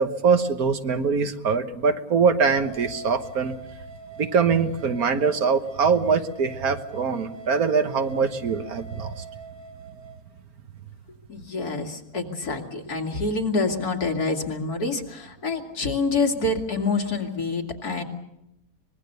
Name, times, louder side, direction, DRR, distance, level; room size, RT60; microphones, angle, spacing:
voice 1, 0.0-3.5 4.2-9.2, right 5 dB, 70° right, 8 dB, 1.7 m, -23 dB
sound 1, 2.5-10.2, right 3 dB, 15° right, 2.4 m, -43 dB
voice 2, 11.3-18.0, left 3 dB, 80° left, 2 dB, 2.8 m, -27 dB
24.5 x 21.0 x 6.8 m, 0.85 s
omnidirectional pair, 1.6 m